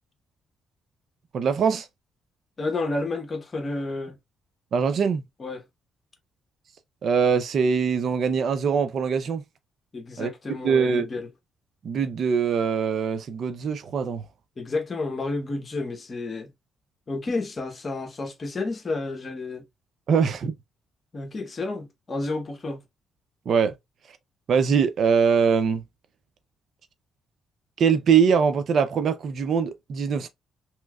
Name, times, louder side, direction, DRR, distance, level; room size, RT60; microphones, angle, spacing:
voice 1, 1.3-1.9 4.7-5.2 7.0-9.4 10.2-10.3 10.6-11.1 11.8-14.2 20.1-20.5 23.5-23.7 24.5-25.8 27.8-30.3, right 6 dB, 60° right, 0.5 m, -22 dB
voice 2, 2.6-4.2 5.4-5.6 9.9-11.3 14.6-16.5 17.1-19.6 21.1-22.8, left 3 dB, 35° left, 0.9 m, -30 dB
3.1 x 3.1 x 2.3 m
cardioid pair, 90°, 0 cm